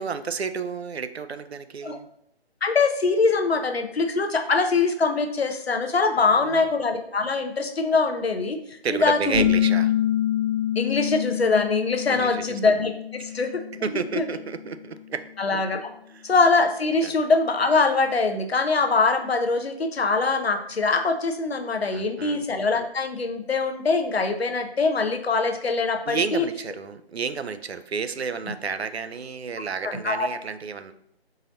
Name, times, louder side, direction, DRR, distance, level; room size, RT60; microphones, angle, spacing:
voice 1, 0.0-2.1 6.3-6.7 8.8-9.9 12.1-12.6 13.3-13.4 13.7-15.3 16.1-16.2 17.0-17.1 21.9-22.4 26.1-30.9, right 5 dB, 80° right, 11 dB, 0.5 m, -31 dB
voice 2, 2.6-9.5 10.8-13.6 14.1-14.3 15.4-15.9 16.2-26.5 29.8-30.3, left 4 dB, 70° left, 6 dB, 0.7 m, -23 dB
sound 1, 9.3-14.7, left 11 dB, 30° left, 0.9 m, -26 dB
3.9 x 2.6 x 4.0 m, 0.73 s
figure-of-eight pair, 155°, 32 cm